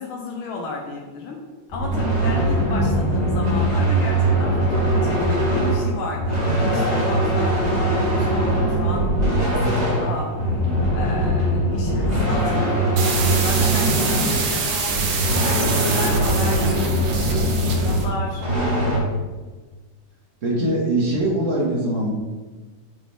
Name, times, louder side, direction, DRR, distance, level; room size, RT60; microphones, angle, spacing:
voice 1, 0.0-10.7 10.9-18.4, left 3 dB, 90° left, -1 dB, 1.7 m, -33 dB
sound 1, 1.7-19.0, right 1 dB, 20° right, 2.6 m, -21 dB
sound 2, 13.0-18.1, right 4 dB, 75° right, 1.8 m, -25 dB
voice 2, 20.4-22.1, right 1 dB, 40° right, -4 dB, 2.3 m, -22 dB
8.3 x 5.9 x 3.5 m, 1.3 s
omnidirectional pair, 2.2 m